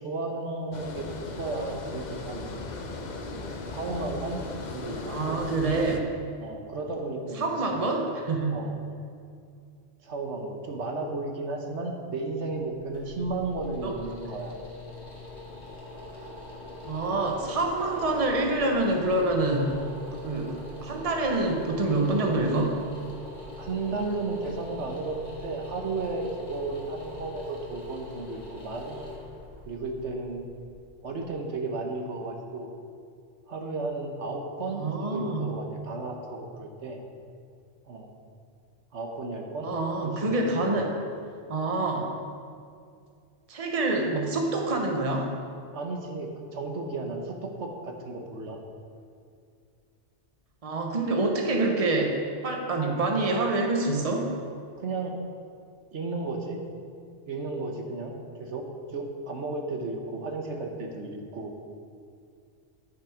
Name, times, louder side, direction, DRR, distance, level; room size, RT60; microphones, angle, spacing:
voice 1, 0.0-2.5 3.3-4.4 4.7-5.4 6.4-8.1 8.5-8.7 10.0-14.5 16.1-16.3 23.6-29.1 29.6-30.5 31.0-32.7 33.5-37.0 37.9-38.1 38.9-39.7 40.0-40.9 45.7-48.6 54.8-55.2 55.9-56.6 57.3-58.7 58.9-61.6, right 3 dB, 75° right, 2 dB, 1.3 m, -34 dB
Water, 0.7-6.0, left 3 dB, 45° left, 0.8 m, -37 dB
voice 2, 5.1-6.1 7.4-8.6 13.8-13.9 16.8-19.9 20.2-22.8 34.8-35.6 39.6-40.9 41.5-42.1 43.5-45.3 50.6-54.3, right 2 dB, 30° right, 1 dB, 1.1 m, -26 dB
sound 1, 12.7-31.5, left 1 dB, 65° left, 2.2 m, -43 dB
11.0 x 6.8 x 4.9 m, 2.3 s
omnidirectional pair, 1.2 m